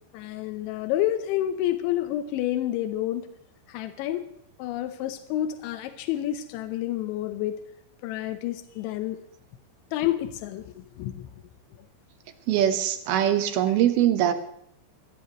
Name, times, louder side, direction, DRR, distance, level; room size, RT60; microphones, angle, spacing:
voice 1, 0.1-3.3 3.7-4.2 4.6-7.7 8.0-9.2 9.9-11.3, left 13 dB, 90° left, 10 dB, 3.2 m, -29 dB
voice 2, 12.5-14.3, right 11 dB, 70° right, 9 dB, 2.7 m, -22 dB
23.0 x 16.5 x 3.1 m, 0.72 s
omnidirectional pair, 5.2 m